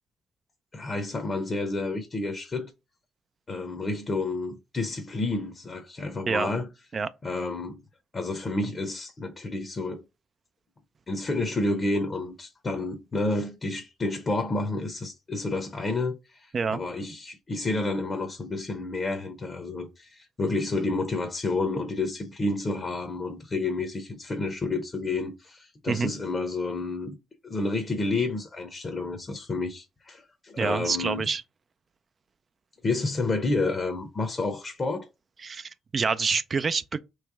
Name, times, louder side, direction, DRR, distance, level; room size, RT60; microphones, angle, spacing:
voice 1, 0.7-2.7 3.5-6.7 7.2-7.8 8.1-10.0 11.1-27.2 27.4-31.3 32.8-35.1, left 2 dB, 35° left, 0.8 m, -30 dB
voice 2, 30.6-31.4 35.4-37.0, right 5 dB, 40° right, 0.3 m, -27 dB
3.2 x 3.0 x 4.7 m
cardioid pair, 90°, 0 cm